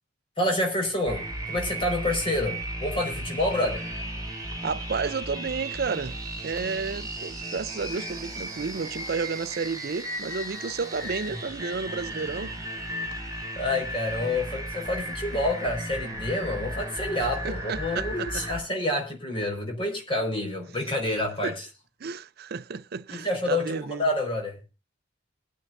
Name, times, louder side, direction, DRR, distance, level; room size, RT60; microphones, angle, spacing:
voice 1, 0.4-3.8 11.0-11.1 13.6-21.7 23.1-24.6, left 1 dB, 30° left, 4.9 m, -28 dB
sound 1, 1.1-18.6, right 1 dB, 20° right, 5.0 m, -35 dB
voice 2, 4.6-6.2 6.4-12.5 17.4-18.4 21.4-21.5 22.0-24.0, right 5 dB, 55° right, 0.5 m, -31 dB
21.5 x 9.2 x 2.6 m
head